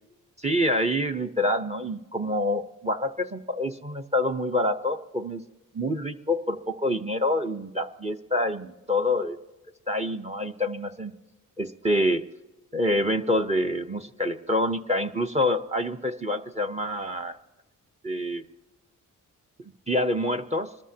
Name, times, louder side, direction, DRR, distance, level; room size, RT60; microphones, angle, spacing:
voice 1, 0.4-5.4 5.7-9.4 9.9-11.1 11.6-12.2 12.7-17.4 18.0-18.4 19.9-20.7, left 1 dB, 20° right, 9 dB, 0.8 m, -26 dB
25.5 x 13.5 x 2.8 m, 1.1 s
cardioid pair, 95°, 33 cm